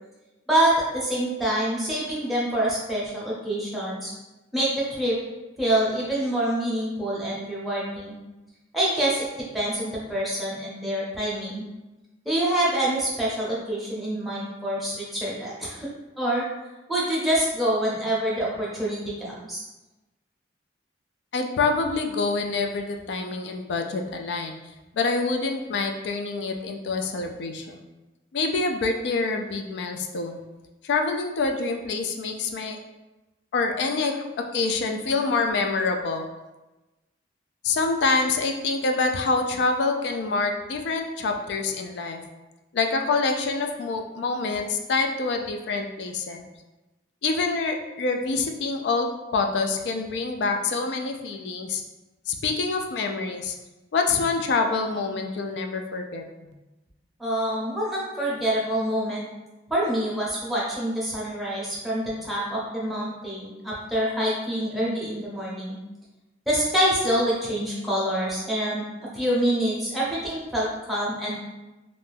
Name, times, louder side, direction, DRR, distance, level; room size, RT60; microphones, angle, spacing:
voice 1, 0.5-4.1 4.5-5.2 5.6-8.2 8.7-9.3 9.5-11.6 12.3-15.9 16.2-16.5 16.9-19.6 57.2-59.3 59.7-65.8 66.5-68.8 69.1-71.4, right 1 dB, ahead, -7 dB, 0.6 m, -26 dB
voice 2, 21.3-24.6 24.9-27.8 28.3-30.4 30.8-32.8 33.5-34.3 34.5-36.3 37.6-42.2 42.7-46.5 47.2-51.8 52.3-53.5 53.9-56.2, left 3 dB, 70° left, 4 dB, 0.3 m, -26 dB
2.5 x 2.2 x 3.3 m, 1.1 s
head